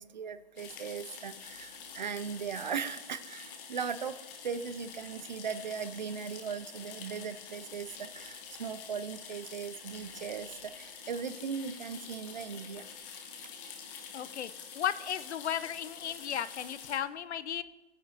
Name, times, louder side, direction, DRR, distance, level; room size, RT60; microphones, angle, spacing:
voice 1, 0.0-12.9, right 6 dB, 40° right, 13 dB, 0.4 m, -38 dB
sound 1, 0.6-17.0, left 6 dB, 15° left, 0.9 m, -47 dB
voice 2, 14.1-14.5 14.8-17.6, left 9 dB, 75° left, 15 dB, 0.7 m, -35 dB
16.5 x 9.4 x 2.8 m, 1.1 s
hypercardioid pair, 150°, 34 cm